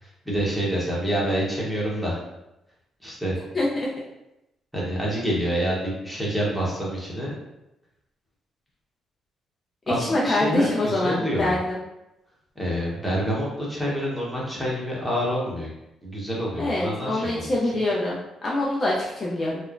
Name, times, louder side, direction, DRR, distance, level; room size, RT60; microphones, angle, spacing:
voice 1, 0.0-2.2 3.0-3.4 4.7-7.3 9.9-11.6 12.6-15.7 16.0-17.5, equal, ahead, -5 dB, 1.0 m, -27 dB
voice 2, 3.5-3.9 9.9-11.8 16.6-19.6, left 2 dB, 35° left, -4 dB, 0.5 m, -25 dB
3.0 x 2.0 x 2.4 m, 0.89 s
cardioid pair, 90°, 0 cm